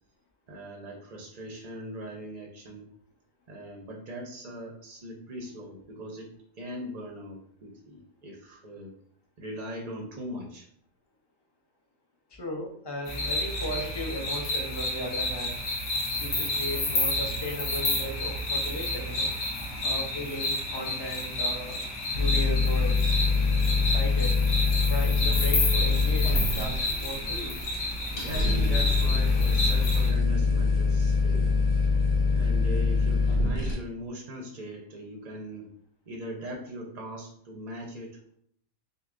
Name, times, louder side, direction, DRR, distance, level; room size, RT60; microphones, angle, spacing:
voice 1, 0.5-2.9 3.5-6.3 6.5-8.9 9.4-10.7 28.1-31.9 32.2-35.7 36.1-38.3, equal, 50° right, 0 dB, 0.5 m, -40 dB
voice 2, 12.3-15.6 16.1-19.3 19.8-21.8 22.1-23.3 23.9-24.3 24.9-27.5, equal, 25° left, 0 dB, 0.5 m, -36 dB
sound 1, 13.1-30.1, left 1 dB, 65° left, 1.2 m, -30 dB
sound 2, 22.1-33.7, left 4 dB, 85° left, 1.5 m, -24 dB
6.4 x 2.2 x 2.4 m, 0.66 s
omnidirectional pair, 1.4 m